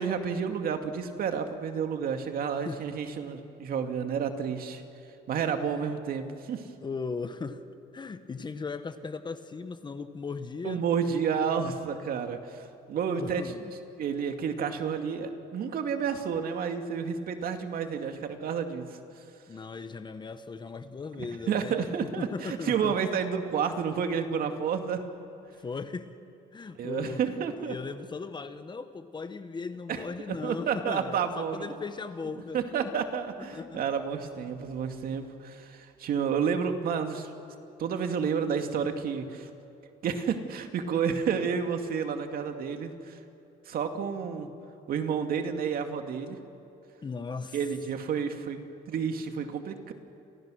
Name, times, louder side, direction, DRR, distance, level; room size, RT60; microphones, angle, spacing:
voice 1, 0.0-4.8 5.3-6.6 10.6-13.4 14.0-19.0 21.2-25.0 26.8-27.8 29.9-30.0 30.3-31.8 32.5-37.3 37.8-39.5 40.0-43.2 43.7-44.5 44.9-46.4 47.5-49.9, right 6 dB, 60° right, 6 dB, 2.3 m, -30 dB
voice 2, 6.8-7.6 7.9-10.8 13.1-13.7 19.5-23.0 25.6-26.2 26.5-32.9 33.4-33.8 47.0-47.6, left 4 dB, 25° left, 10 dB, 1.3 m, -38 dB
30.0 x 27.5 x 6.4 m, 2.7 s
cardioid pair, 110°, 17 cm